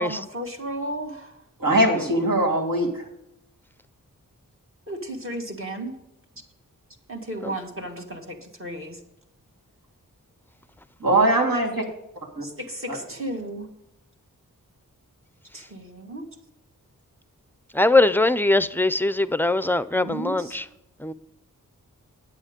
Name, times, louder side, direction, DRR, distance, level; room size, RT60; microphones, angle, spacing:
voice 1, 0.0-1.4 4.9-5.9 7.1-9.0 12.4-13.7 15.5-16.3 19.9-20.6, right 1 dB, 40° right, 2.1 m, -34 dB
voice 2, 1.6-3.1 11.0-11.8 12.4-12.5 12.9-13.0, right 1 dB, 75° right, 2.8 m, -21 dB
voice 3, 17.7-20.6 21.0-21.1, left 2 dB, 5° left, 0.5 m, -21 dB
9.8 x 8.5 x 5.2 m
wide cardioid pair, 70°, 34 cm